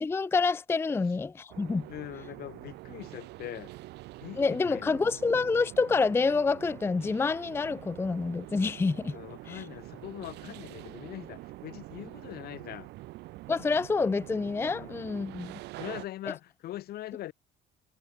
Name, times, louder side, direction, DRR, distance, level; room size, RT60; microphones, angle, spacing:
voice 1, 0.0-1.9 4.4-9.2 9.5-9.6 13.5-15.5, left 4 dB, 15° left, 0.4 m, -27 dB
sound 1, 1.5-16.1, right 19 dB, 85° right, 2.2 m, -45 dB
voice 2, 1.9-3.7 4.2-5.0 9.1-12.9 14.7-15.0 15.8-17.3, left 14 dB, 70° left, 1.4 m, -42 dB
cardioid pair, 110°, 17 cm